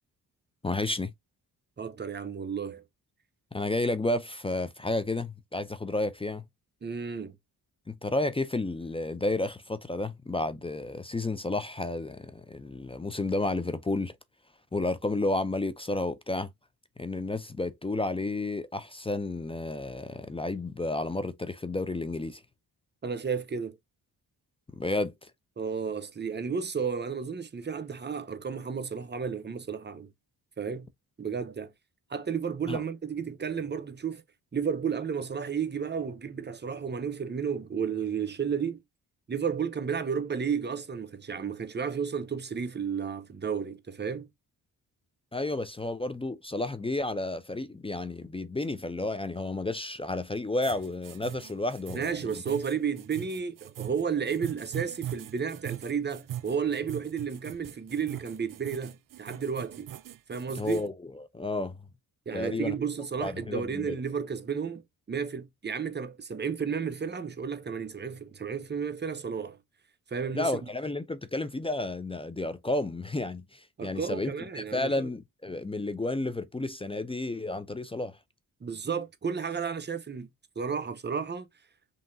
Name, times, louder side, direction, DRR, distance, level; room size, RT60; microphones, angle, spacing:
voice 1, 0.6-1.1 3.5-6.4 7.9-14.1 14.7-16.5 17.0-22.4 24.7-25.3 32.7-32.8 45.3-52.2 60.6-61.8 62.3-62.7 63.2-64.0 70.3-78.2, left 2 dB, 15° left, 0.4 m, -31 dB
voice 2, 1.8-2.8 6.8-7.4 23.0-23.8 25.6-30.1 30.6-30.9 31.2-31.7 32.1-34.2 34.5-38.8 39.3-44.3 51.9-59.9 60.3-60.8 62.3-64.8 65.1-69.6 70.1-70.5 73.8-75.1 78.6-80.3 80.6-81.5, right 6 dB, 25° right, 0.8 m, -32 dB
sound 1, 50.6-60.9, right 12 dB, 55° right, 0.5 m, -41 dB
5.4 x 2.9 x 2.6 m
cardioid pair, 80°, 39 cm